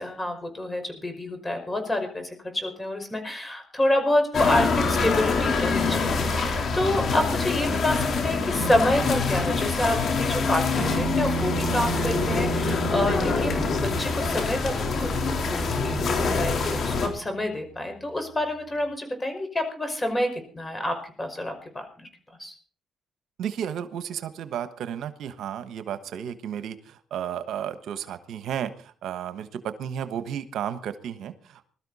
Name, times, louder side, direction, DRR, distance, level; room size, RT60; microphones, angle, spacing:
voice 1, 0.0-22.1 22.4-22.5, left 1 dB, 20° left, 6 dB, 5.2 m, -28 dB
sound 1, 4.3-17.1, left 4 dB, 60° left, 3.8 m, -25 dB
sound 2, 10.8-17.5, right 7 dB, 40° right, 3.5 m, -35 dB
voice 2, 23.4-31.7, right 9 dB, 75° right, 11 dB, 1.2 m, -33 dB
21.0 x 13.0 x 4.2 m, 0.42 s
cardioid pair, 90°, 0 cm